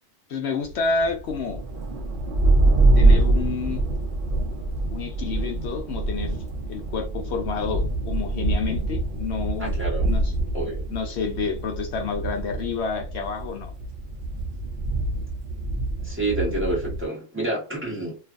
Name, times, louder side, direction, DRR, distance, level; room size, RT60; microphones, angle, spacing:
voice 1, 0.3-1.6 3.0-3.8 4.9-9.7 10.0-10.3 10.9-13.7, left 5 dB, 65° left, 0.8 m, -29 dB
sound 1, 0.6-17.0, right 2 dB, 55° right, 0.6 m, -25 dB
voice 2, 9.6-10.1 10.5-10.8 16.0-18.2, right 1 dB, 10° right, 1.1 m, -28 dB
2.5 x 2.4 x 2.4 m
omnidirectional pair, 1.3 m